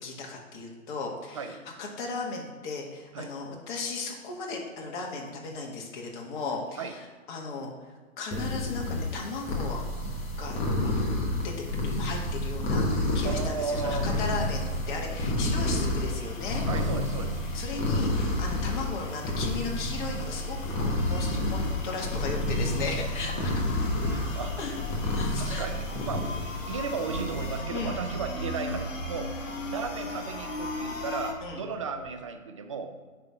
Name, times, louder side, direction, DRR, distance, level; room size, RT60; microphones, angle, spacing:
voice 1, 0.0-7.7 8.2-9.8 10.3-11.0 11.4-11.5 11.8-16.7 17.2-23.6 24.6-24.7 25.1-25.7 27.7-28.0 31.4-31.6, left 3 dB, 35° left, -1 dB, 1.8 m, -36 dB
sound 1, 8.3-27.6, left 1 dB, 15° left, 1.1 m, -30 dB
sound 2, 12.6-31.3, left 3 dB, 65° left, 2.0 m, -41 dB
voice 2, 13.2-14.1 16.7-17.4 21.3-21.8 23.3-24.6 24.9-25.0 25.4-26.3 26.7-29.3 29.7-33.1, right 5 dB, 25° right, 7 dB, 0.4 m, -35 dB
sound 3, 27.1-32.1, right 3 dB, 75° right, 1.6 m, -39 dB
9.6 x 3.4 x 5.8 m, 1.4 s
hypercardioid pair, 150°, 41 cm